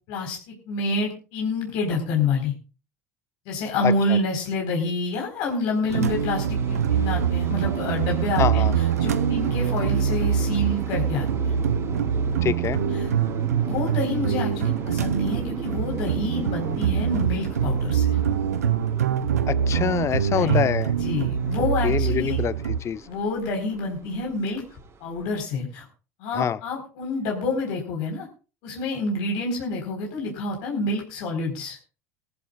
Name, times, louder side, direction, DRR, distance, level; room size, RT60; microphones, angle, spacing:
voice 1, 0.1-2.5 3.5-11.6 12.9-13.1 13.6-18.2 20.3-20.6 20.9-22.4 23.1-24.6 25.0-25.8 26.2-28.3 28.6-31.8, left 2 dB, 65° left, 1 dB, 4.3 m, -28 dB
voice 2, 3.8-4.2 8.4-8.7 12.4-12.8 19.5-20.9 21.6-23.0 26.3-26.6, left 8 dB, 35° left, 16 dB, 0.8 m, -26 dB
sound 1, 5.9-25.4, right 6 dB, 35° right, 3.7 m, -37 dB
sound 2, 5.9-22.8, right 8 dB, 90° right, 0.9 m, -24 dB
20.5 x 14.5 x 2.4 m, 0.34 s
hypercardioid pair, 80°, 8 cm